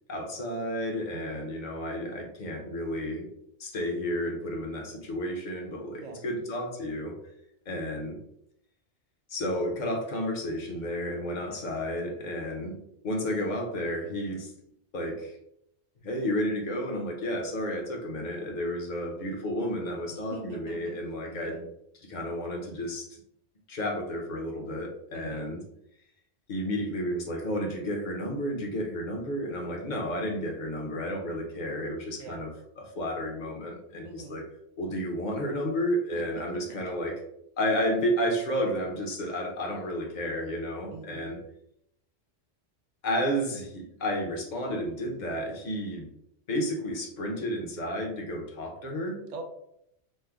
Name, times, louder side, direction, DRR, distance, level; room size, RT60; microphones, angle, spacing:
voice 1, 0.1-3.3 3.6-7.2 7.7-8.2 9.3-14.5 14.9-15.4 16.0-21.7 21.9-23.2 23.7-25.6 26.5-34.5 34.8-37.2 37.6-41.4 43.0-46.1 46.5-49.2, equal, 45° left, 1 dB, 0.7 m, -32 dB
voice 2, 1.1-1.4 5.9-6.2 7.7-8.0 11.4-11.6 20.1-20.9 21.2-21.6 25.1-25.5 32.2-32.4 34.0-34.4 36.1-36.2 36.7-36.8 40.9-41.3 49.3-49.4, right 4 dB, 50° right, 3 dB, 0.5 m, -44 dB
3.1 x 2.1 x 3.4 m, 0.76 s
omnidirectional pair, 1.2 m